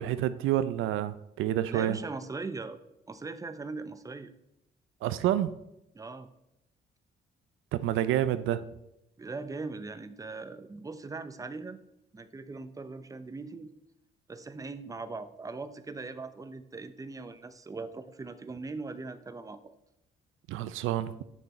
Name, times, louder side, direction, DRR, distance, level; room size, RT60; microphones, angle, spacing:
voice 1, 0.0-2.0 5.0-5.6 7.7-8.6 20.5-21.2, right 12 dB, 85° right, 13 dB, 0.5 m, -28 dB
voice 2, 1.7-2.8 3.1-4.3 5.9-6.3 9.2-11.8 12.1-13.7 14.3-19.6, right 3 dB, 15° right, 11 dB, 0.6 m, -40 dB
8.5 x 6.7 x 4.2 m, 0.86 s
cardioid pair, 90°, 20 cm